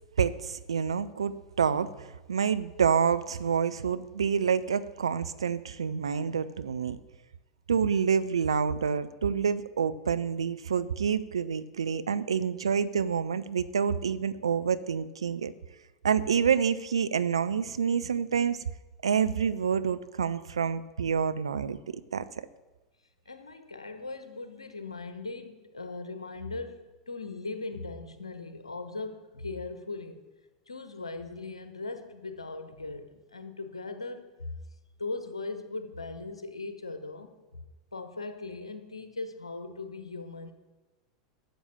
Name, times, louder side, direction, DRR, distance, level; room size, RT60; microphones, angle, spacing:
voice 1, 0.2-7.0 7.7-15.5 16.0-18.7 19.0-22.3, right 7 dB, 75° right, 13 dB, 0.6 m, -28 dB
voice 2, 23.2-30.3 30.7-34.5 35.0-40.5, left 3 dB, 80° left, 9 dB, 1.2 m, -39 dB
12.5 x 7.1 x 7.1 m, 1.1 s
figure-of-eight pair, 85°, 3 cm